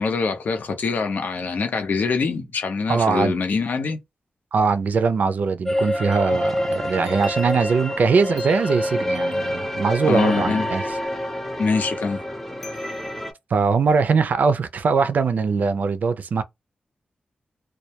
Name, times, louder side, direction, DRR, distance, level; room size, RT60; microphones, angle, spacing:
voice 1, 0.0-4.0 10.0-10.7 11.6-12.2, left 4 dB, 75° left, 0.7 m, -24 dB
voice 2, 2.9-3.3 4.5-10.8 13.5-16.4, right 5 dB, 70° right, 0.4 m, -21 dB
sound 1, 5.6-13.3, left 1 dB, 10° left, 0.5 m, -27 dB
2.2 x 2.1 x 2.8 m
wide cardioid pair, 145°, 3 cm